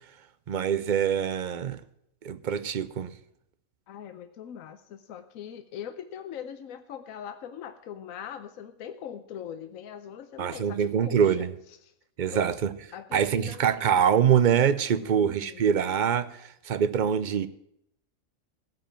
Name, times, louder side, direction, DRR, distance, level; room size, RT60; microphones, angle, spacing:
voice 1, 0.5-1.8 2.2-3.1 10.4-11.5 12.2-12.7 13.1-17.5, right 8 dB, 55° right, 15 dB, 0.6 m, -24 dB
voice 2, 3.9-11.5 11.8-11.9 12.3-12.5 12.9-13.8 15.0-15.8, left 9 dB, 80° left, 9 dB, 1.1 m, -41 dB
15.5 x 5.2 x 8.9 m, 0.76 s
omnidirectional pair, 1.4 m